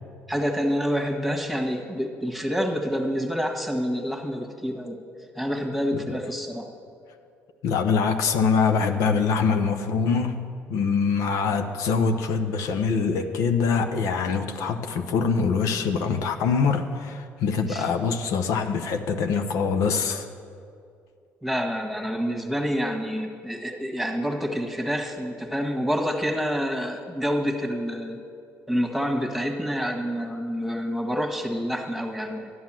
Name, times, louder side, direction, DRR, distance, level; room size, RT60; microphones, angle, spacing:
voice 1, 0.3-5.0 5.3-6.7 17.7-17.9 21.4-28.2 28.7-32.5, equal, ahead, 2 dB, 1.6 m, -27 dB
voice 2, 7.6-20.3, left 5 dB, 80° left, 6 dB, 0.9 m, -24 dB
12.5 x 9.5 x 7.5 m, 2.4 s
cardioid pair, 100°, 5 cm